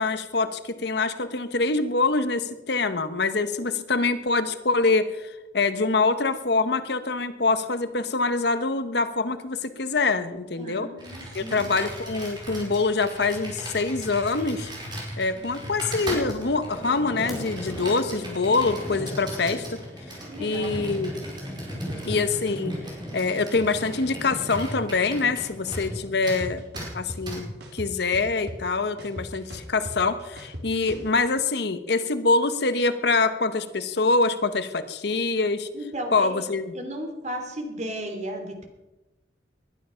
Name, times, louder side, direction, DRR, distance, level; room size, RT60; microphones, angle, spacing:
voice 1, 0.0-10.9 11.3-14.7 15.2-19.8 20.4-21.1 22.0-22.8 23.1-26.6 26.9-35.7 36.1-36.7, left 3 dB, 65° left, 11 dB, 1.0 m, -25 dB
voice 2, 10.6-11.7 15.3-15.7 20.3-20.7 35.7-36.5 36.7-38.6, equal, 40° right, 4 dB, 3.1 m, -35 dB
Computer keyboard, 11.0-26.0 26.3-26.4 26.8-26.9 27.3-27.4, right 1 dB, 25° right, 5.2 m, -38 dB
sound 1, 16.3-26.2, equal, ahead, 4.5 m, -38 dB
sound 2, 25.7-25.8 26.2-27.2 27.6-28.7 29.0-31.1, equal, 65° right, 3.2 m, -38 dB
20.0 x 11.5 x 5.7 m, 1.0 s
head